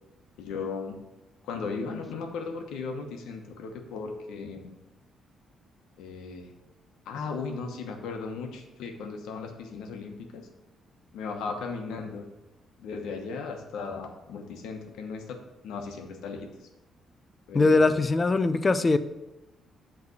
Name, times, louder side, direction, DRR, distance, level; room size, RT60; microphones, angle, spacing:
voice 1, 0.4-1.0 1.4-4.7 6.0-6.5 7.1-10.4 11.1-12.3 12.8-15.4 15.6-16.5 17.5-18.0, left 4 dB, 85° left, 4 dB, 1.0 m, -36 dB
voice 2, 17.5-19.0, left 3 dB, 30° left, 12 dB, 0.4 m, -21 dB
8.2 x 3.3 x 6.5 m, 1.0 s
cardioid pair, 90°, 0 cm